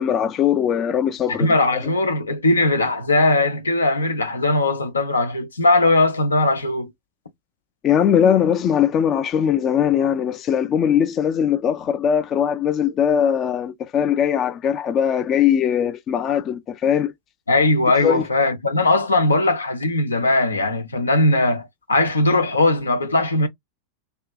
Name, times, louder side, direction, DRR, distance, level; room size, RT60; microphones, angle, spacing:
voice 1, 0.0-1.5 7.8-17.1 18.0-18.2, left 9 dB, 30° left, 0.4 m, -20 dB
voice 2, 1.3-6.9 17.5-23.5, left 2 dB, 75° left, 0.6 m, -19 dB
2.6 x 2.2 x 2.3 m
figure-of-eight pair, 90°, 0 cm